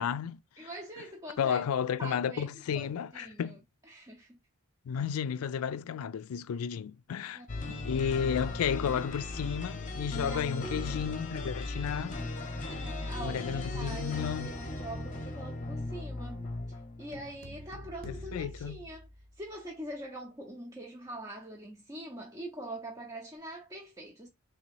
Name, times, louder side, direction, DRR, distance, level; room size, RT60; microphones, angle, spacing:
voice 1, 0.0-0.4 1.4-3.6 4.9-7.4 7.7-12.2 13.2-14.5 18.0-18.8, left 7 dB, 75° left, 0.3 m, -32 dB
voice 2, 0.6-1.7 2.0-2.5 2.7-4.4 4.9-5.0 7.3-7.9 10.2-10.5 12.7-19.1 19.4-24.3, right 1 dB, 15° right, 0.6 m, -44 dB
sound 1, 7.5-17.3, left 2 dB, 35° left, 0.8 m, -37 dB
Scratching (performance technique), 8.6-8.7 9.1-9.4 10.1-10.4 10.8-11.1 11.9-12.2 12.5-12.9 13.6-13.9 14.3-14.6, equal, 80° right, 1.1 m, -56 dB
sound 2, 17.1-19.7, equal, 45° right, 0.8 m, -47 dB
3.3 x 2.8 x 4.5 m
head